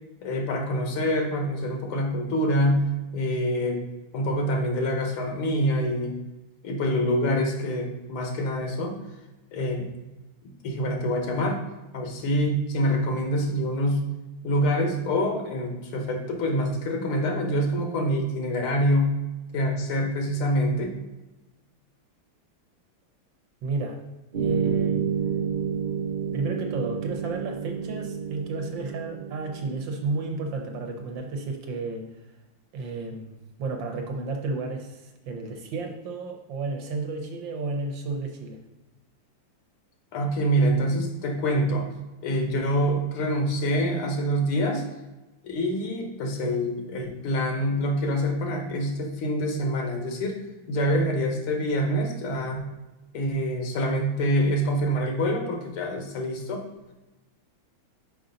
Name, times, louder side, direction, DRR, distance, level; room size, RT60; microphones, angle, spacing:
voice 1, 0.2-2.9 3.1-3.8 4.1-6.2 6.6-9.0 9.5-9.9 10.6-11.6 11.9-14.0 14.4-19.1 19.5-20.9 40.1-41.9 42.2-44.8 45.4-52.7 53.1-56.7, equal, 80° left, 3 dB, 1.9 m, -26 dB
voice 2, 23.6-24.0 24.4-25.0 26.3-32.0 32.7-38.6, right 3 dB, 70° right, 3 dB, 1.3 m, -32 dB
sound 1, 24.3-30.9, right 6 dB, 40° right, 0.7 m, -30 dB
5.5 x 4.8 x 3.9 m, 1.1 s
omnidirectional pair, 2.3 m